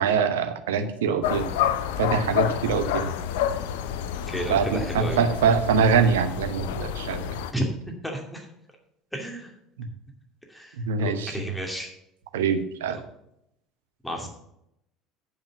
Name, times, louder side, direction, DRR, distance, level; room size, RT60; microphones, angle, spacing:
voice 1, 0.0-1.5 2.0-3.1 4.5-7.3 9.8-9.9 10.8-11.5 12.3-13.0, right 6 dB, 70° right, 9 dB, 0.9 m, -24 dB
sound 1, 1.2-7.5, left 9 dB, 65° left, 0.6 m, -29 dB
voice 2, 4.3-5.2 7.5-8.5 9.1-9.5 10.5-11.9 14.0-14.3, equal, 5° left, 1 dB, 2.5 m, -32 dB
9.3 x 5.5 x 6.9 m, 0.78 s
figure-of-eight pair, 65°, 0 cm